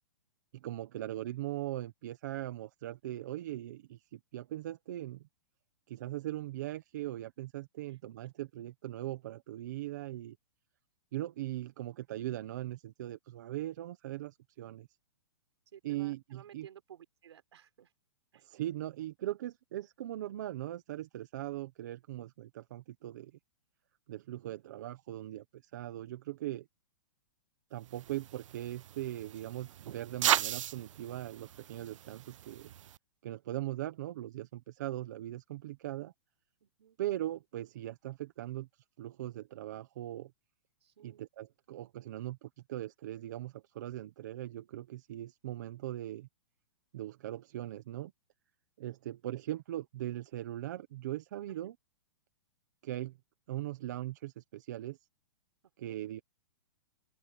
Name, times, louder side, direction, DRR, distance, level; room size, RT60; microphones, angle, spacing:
voice 1, 0.5-5.2 5.9-10.4 11.1-14.9 15.8-16.7 18.3-23.3 24.1-26.7 27.7-32.7 33.2-36.1 37.0-40.3 41.0-46.3 46.9-48.1 48.8-51.7 52.8-53.2 53.5-55.0 55.8-56.2, right 14 dB, 35° right, 1.1 m, -40 dB
voice 2, 7.9-8.3 15.7-17.9 18.3-18.4 36.6-37.0 40.8-41.2 51.5-51.7 55.8-56.0, right 10 dB, 60° right, 5.5 m, -56 dB
sound 1, 27.9-33.0, right 11 dB, 85° right, 0.4 m, -36 dB
open air
hypercardioid pair, 180°, 16 cm